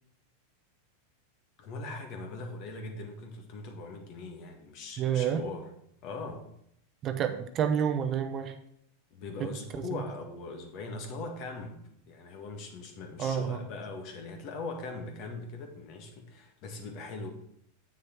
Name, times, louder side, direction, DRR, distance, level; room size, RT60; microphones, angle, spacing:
voice 1, 1.6-5.7 6.0-6.5 9.1-11.8 12.1-17.3, left 3 dB, 50° left, 4 dB, 1.8 m, -40 dB
voice 2, 5.0-5.4 7.0-8.6 9.4-9.5 9.9-10.0 13.2-13.6, right 8 dB, 35° right, 8 dB, 0.8 m, -29 dB
7.9 x 6.4 x 4.5 m, 0.73 s
supercardioid pair, 130°, 0 cm